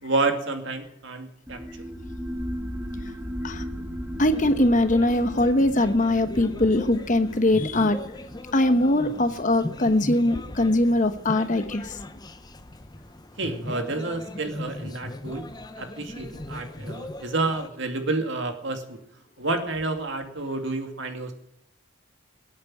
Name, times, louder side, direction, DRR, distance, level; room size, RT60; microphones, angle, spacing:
voice 1, 0.0-1.6 13.4-15.5 15.8-19.0 19.4-21.3, right 3 dB, 60° right, 5 dB, 2.4 m, -29 dB
sound 1, 1.5-12.6, equal, 10° right, 1.8 m, -38 dB
voice 2, 4.2-8.0 8.5-12.0, left 1 dB, 35° left, 9 dB, 1.0 m, -21 dB
sound 2, 4.3-17.7, left 1 dB, 20° left, 0.7 m, -39 dB
19.5 x 8.5 x 8.8 m, 0.78 s
head